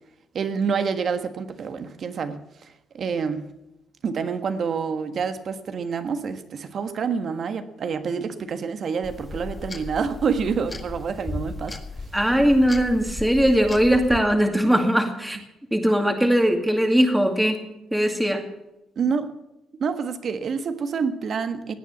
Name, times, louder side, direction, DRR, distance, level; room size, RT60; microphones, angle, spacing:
voice 1, 0.3-3.5 4.0-11.8 18.9-19.3 19.8-21.7, right 6 dB, 55° right, 9 dB, 1.5 m, -27 dB
sound 1, 9.0-14.2, left 3 dB, 20° left, 1.7 m, -36 dB
voice 2, 12.1-15.4 15.7-17.6 17.9-18.4, equal, 5° right, 4 dB, 2.3 m, -20 dB
17.5 x 9.4 x 7.2 m, 0.93 s
cardioid pair, 90°, 0 cm